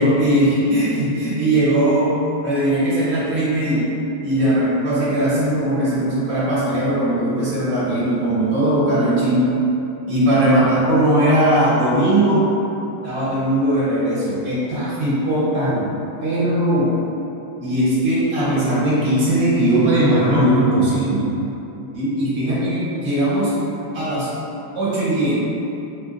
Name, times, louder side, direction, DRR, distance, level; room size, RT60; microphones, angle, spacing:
voice 1, 0.0-2.1 2.4-3.9 4.2-9.5 10.1-12.5 13.0-15.9 16.2-16.9 17.6-21.3 21.9-23.5 23.9-24.3 24.7-25.3, right 1 dB, 45° right, -9 dB, 1.0 m, -19 dB
5.6 x 2.5 x 2.4 m, 3.0 s
omnidirectional pair, 2.1 m